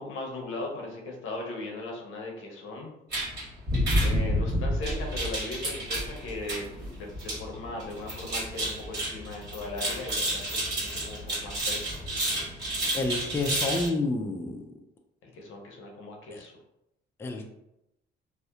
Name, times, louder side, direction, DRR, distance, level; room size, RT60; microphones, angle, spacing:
voice 1, 0.0-2.9 4.0-12.0 15.2-16.5, left 2 dB, 85° left, 0 dB, 0.6 m, -38 dB
sound 1, 3.1-13.9, right 1 dB, 55° right, 1.3 m, -30 dB
voice 2, 12.9-14.7 16.3-16.4 17.2-17.5, left 2 dB, 10° left, 2 dB, 0.3 m, -29 dB
2.7 x 2.0 x 2.3 m, 0.85 s
cardioid pair, 90°, 20 cm